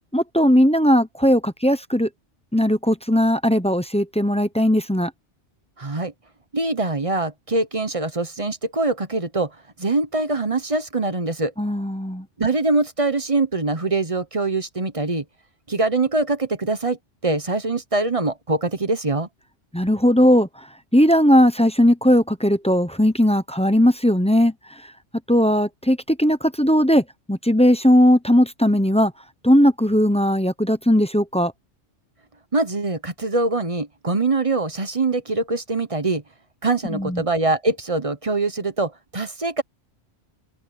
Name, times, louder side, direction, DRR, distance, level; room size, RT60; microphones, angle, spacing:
voice 1, 0.1-2.1 2.5-5.1 11.6-12.3 19.7-20.5 20.9-24.5 25.3-29.1 29.4-31.5 36.9-37.2, equal, 5° left, 0.8 m, -18 dB
voice 2, 5.8-6.1 6.5-9.5 9.8-11.5 12.4-15.2 15.7-17.0 17.2-19.3 32.5-36.2 36.6-39.6, right 3 dB, 30° right, 1.0 m, -23 dB
open air
omnidirectional pair, 1.2 m